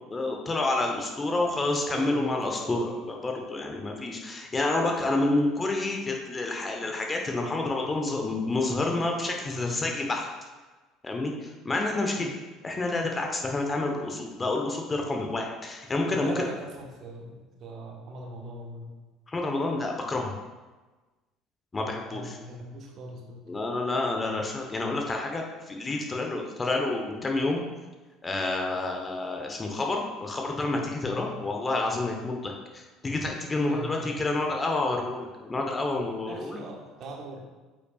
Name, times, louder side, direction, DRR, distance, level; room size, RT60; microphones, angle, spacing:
voice 1, 0.1-10.3 11.0-12.3 12.6-16.5 19.3-20.3 21.7-22.3 23.5-27.6 28.2-36.6, left 2 dB, 25° left, 1 dB, 1.1 m, -29 dB
voice 2, 1.2-1.6 1.9-2.7 12.2-12.4 16.1-18.9 22.1-23.4 31.0-31.3 33.7-34.1 36.2-37.4, right 2 dB, 50° right, 0 dB, 1.3 m, -41 dB
8.2 x 5.6 x 2.5 m, 1.2 s
figure-of-eight pair, 60°, 0 cm